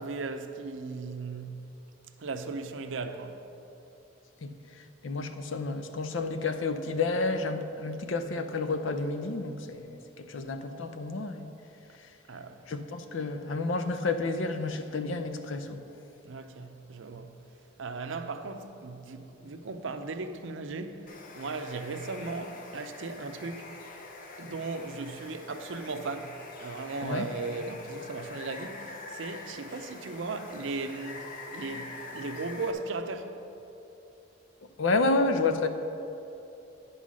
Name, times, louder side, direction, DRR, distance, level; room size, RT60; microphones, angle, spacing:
voice 1, 0.0-1.6 2.2-3.4 12.3-12.6 16.2-17.3 17.8-23.7 24.4-31.2 31.5-33.4, right 3 dB, 75° right, 0.6 m, -37 dB
voice 2, 5.0-11.5 12.7-15.8 27.0-27.3 34.8-35.7, left 3 dB, 80° left, 0.6 m, -30 dB
Water, 21.1-32.7, left 3 dB, 45° left, 0.8 m, -45 dB
9.7 x 5.6 x 6.2 m
head